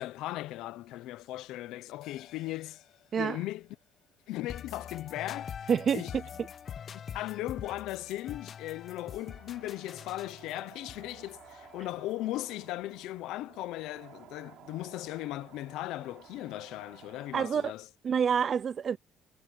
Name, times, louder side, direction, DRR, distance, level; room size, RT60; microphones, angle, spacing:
voice 1, 0.0-2.8 3.2-3.7 4.3-6.2 6.9-17.9, left 16 dB, 80° left, 0.8 m, -38 dB
sound 1, 2.0-6.7 7.0-7.1, left 12 dB, 60° left, 7.0 m, -61 dB
sound 2, 4.5-12.3, left 8 dB, 40° left, 1.2 m, -44 dB
voice 2, 5.7-6.0 17.3-17.7 18.0-19.0, right 7 dB, 40° right, 0.6 m, -27 dB
sound 3, 9.0-17.7, right 12 dB, 70° right, 3.2 m, -55 dB
cardioid pair, 125°, 0 cm